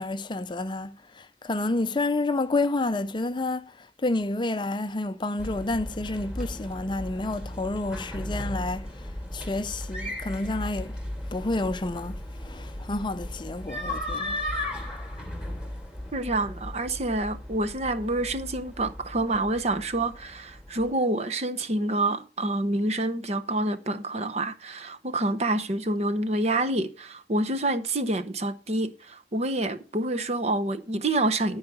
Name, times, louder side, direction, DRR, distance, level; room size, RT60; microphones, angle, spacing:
voice 1, 0.0-11.0 11.3-14.4, left 2 dB, 25° left, 0.5 m, -30 dB
sound 1, 5.4-20.9, left 1 dB, 5° right, 2.8 m, -36 dB
voice 2, 16.1-31.6, right 2 dB, 40° right, 0.8 m, -27 dB
13.5 x 4.8 x 6.3 m
head